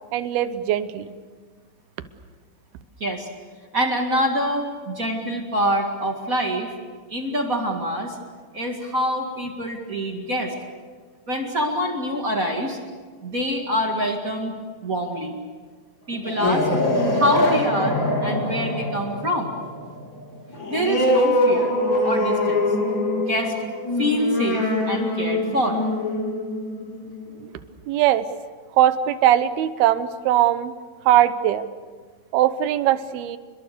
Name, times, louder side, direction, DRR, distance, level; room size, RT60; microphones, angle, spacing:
voice 1, 0.1-1.1 27.4-27.5 27.9-28.3 28.8-30.7 31.1-31.7 32.3-33.4, right 12 dB, 75° right, 12 dB, 2.6 m, -20 dB
voice 2, 3.7-6.7 7.1-8.2 8.5-10.5 11.3-12.8 13.2-14.5 14.8-15.4 16.1-16.7 17.1-19.6 20.7-21.7 22.0-22.6 23.3-23.6 24.0-25.8 26.8-26.9, equal, 45° right, 2 dB, 1.1 m, -25 dB
sound 1, 16.1-27.3, left 1 dB, 25° left, 3.6 m, -23 dB
30.0 x 22.0 x 6.8 m, 1.5 s
omnidirectional pair, 5.2 m